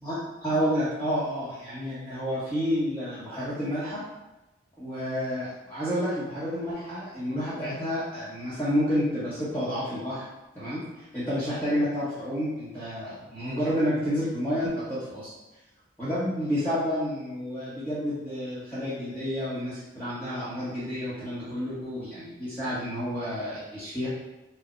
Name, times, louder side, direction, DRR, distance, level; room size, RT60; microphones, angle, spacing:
voice 1, 0.0-4.0 4.8-10.2 10.5-15.3 16.0-24.1, equal, 10° left, -13 dB, 0.9 m, -30 dB
4.7 x 2.1 x 4.3 m, 1.0 s
head